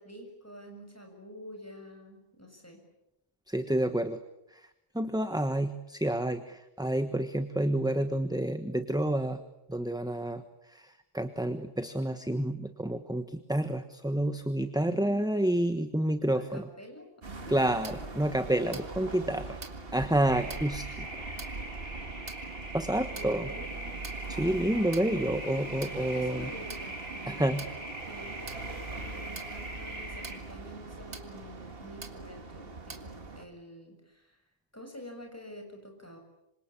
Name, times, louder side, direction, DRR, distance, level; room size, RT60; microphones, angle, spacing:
voice 1, 0.0-2.8 14.7-15.4 16.3-18.3 18.7-19.2 20.3-20.7 23.1-23.9 26.0-27.8 28.1-34.4 34.7-36.2, equal, 10° left, 3 dB, 7.0 m, -48 dB
voice 2, 3.5-4.2 4.5-4.6 4.9-9.4 9.7-10.4 10.7-16.7 17.5-19.4 19.9-21.2 22.7-23.5 24.3-26.5 27.3-27.7, right 1 dB, 5° right, 9 dB, 1.2 m, -29 dB
sound 1, 17.2-33.4, right 3 dB, 50° right, 2.1 m, -42 dB
sound 2, 20.3-30.4, right 1 dB, 70° right, 4.4 m, -42 dB
26.5 x 26.0 x 8.6 m, 0.87 s
omnidirectional pair, 1.2 m